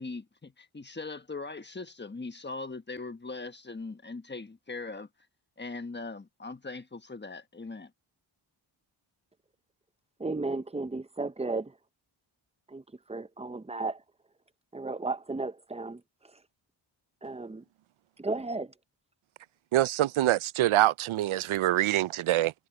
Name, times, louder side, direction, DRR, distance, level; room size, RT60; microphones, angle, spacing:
voice 1, 0.0-5.1 5.6-7.9, left 3 dB, 20° left, 1.3 m, -40 dB
voice 2, 10.2-11.8 12.7-14.0 14.7-16.4 17.2-17.6 18.2-18.7, right 3 dB, 15° right, 0.6 m, -34 dB
voice 3, 19.7-22.5, right 14 dB, 80° right, 0.5 m, -25 dB
wide cardioid pair, 100°, 48 cm